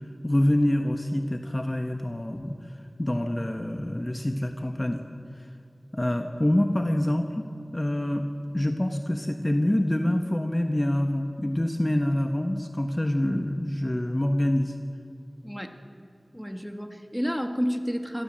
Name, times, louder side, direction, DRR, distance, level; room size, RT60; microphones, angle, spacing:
voice 1, 0.2-2.6 3.0-5.0 5.4-5.5 5.9-7.5 7.7-8.2 8.5-14.7, left 1 dB, 25° left, 5 dB, 1.2 m, -26 dB
voice 2, 15.4-15.8 16.3-18.2, equal, ahead, 5 dB, 2.0 m, -30 dB
26.0 x 18.0 x 7.6 m, 2.6 s
wide cardioid pair, 60°, 0 cm